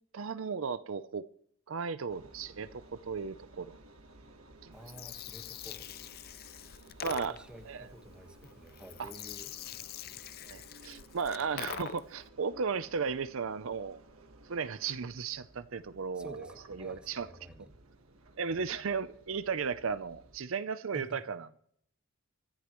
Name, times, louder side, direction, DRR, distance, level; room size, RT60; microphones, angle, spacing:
voice 1, 0.1-1.3 1.7-3.8 4.6-4.7 7.0-7.4 7.7-7.9 9.0-9.1 10.5-14.0 14.5-16.5 16.8-17.3 18.4-21.5, right 5 dB, 65° right, 0.6 m, -35 dB
Engine, 2.1-20.4, right 2 dB, 85° right, 1.5 m, -56 dB
Gurgling, 4.7-12.2, left 9 dB, 45° left, 0.5 m, -44 dB
voice 2, 4.7-5.9 7.3-9.5 11.3-11.6 16.1-17.7 18.5-18.7 20.9-21.2, equal, 5° right, 1.4 m, -51 dB
25.0 x 11.5 x 3.1 m
head